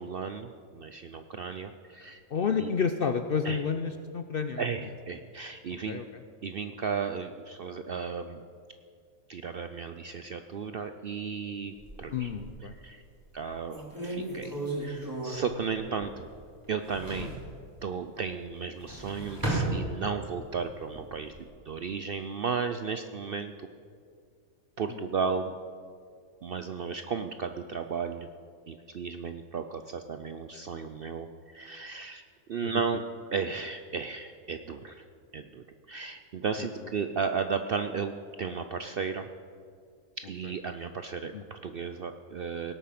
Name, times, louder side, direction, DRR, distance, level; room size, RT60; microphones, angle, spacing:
voice 1, 0.0-2.2 2.6-2.7 3.4-3.6 4.6-6.0 6.4-8.4 9.3-12.3 12.8-13.0 13.3-14.5 14.8-16.2 16.7-17.4 17.8-21.3 21.7-23.5 24.8-25.6 26.4-28.3 28.7-31.3 31.5-32.2 32.5-33.0 33.3-35.0 35.3-39.3 40.3-42.7, right 5 dB, 65° right, 8 dB, 0.6 m, -34 dB
voice 2, 2.3-4.6 5.9-6.0 12.1-12.7 17.2-17.3 24.9-25.0 32.6-32.7 36.6-36.7 41.3-41.4, left 6 dB, 60° left, 8 dB, 0.6 m, -30 dB
sound 1, 11.8-12.7 13.3-13.4 13.7-16.4 16.6-17.5 18.6-20.4 20.8-21.5, right 2 dB, 15° right, 2.8 m, -35 dB
18.0 x 8.5 x 5.9 m, 2.2 s
omnidirectional pair, 1.5 m